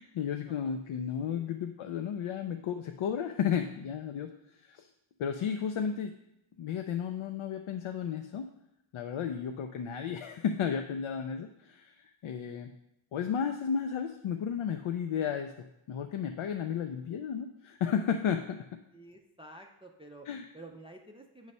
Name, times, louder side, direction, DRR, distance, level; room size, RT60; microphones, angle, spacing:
voice 1, 0.0-4.9 5.2-6.1 6.6-8.4 8.9-12.7 13.1-18.8 20.3-20.5, left 7 dB, 75° left, 6 dB, 0.5 m, -33 dB
voice 2, 18.9-20.3 20.5-21.5, right 2 dB, 15° right, 3 dB, 0.3 m, -50 dB
8.1 x 3.2 x 5.3 m, 0.84 s
wide cardioid pair, 165°, 49 cm